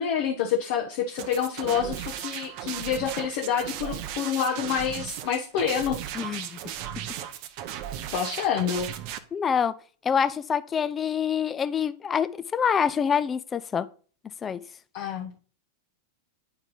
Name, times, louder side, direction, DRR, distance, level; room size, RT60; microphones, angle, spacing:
voice 1, 0.0-6.0 8.1-8.9 14.9-15.3, left 8 dB, 50° left, 0.9 m, -27 dB
sound 1, 1.2-9.2, right 11 dB, 45° right, 0.6 m, -36 dB
voice 2, 6.1-6.6 9.3-9.7 10.0-13.9 14.4-14.6, left 7 dB, 20° left, 0.4 m, -26 dB
9.0 x 4.4 x 3.7 m
figure-of-eight pair, 90°, 0 cm